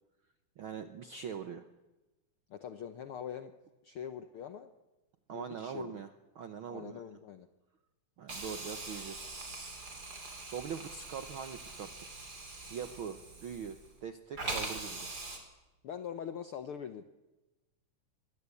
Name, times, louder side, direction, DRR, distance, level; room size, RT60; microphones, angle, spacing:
voice 1, 0.6-1.7 5.3-6.1 6.3-7.0 8.2-9.2 10.5-12.2 12.7-15.1, right 7 dB, 70° right, 9 dB, 1.2 m, -42 dB
voice 2, 2.5-3.5 3.8-4.7 5.3-6.0 6.7-7.5 15.8-17.0, left 8 dB, 70° left, 10 dB, 1.3 m, -43 dB
Hiss, 8.3-14.0 14.4-15.4, right 2 dB, 30° right, 4.1 m, -42 dB
25.0 x 21.0 x 8.4 m, 1.1 s
omnidirectional pair, 3.7 m